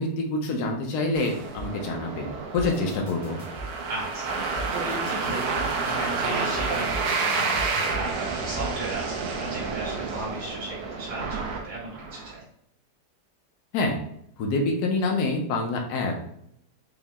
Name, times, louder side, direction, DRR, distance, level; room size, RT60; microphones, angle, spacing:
voice 1, 0.0-3.4 13.7-14.0 14.4-16.2, left 2 dB, 75° left, 1 dB, 1.2 m, -26 dB
sound 1, 1.1-12.3, right 4 dB, 70° right, 1.1 m, -30 dB
sound 2, 1.6-1.7 2.6-3.7 4.6-5.7 6.6-8.0 8.6-8.7, right 2 dB, 40° left, 0.8 m, -37 dB
voice 2, 3.9-12.4, right 2 dB, 90° right, -6 dB, 2.2 m, -35 dB
5.5 x 2.0 x 3.5 m, 0.71 s
omnidirectional pair, 1.8 m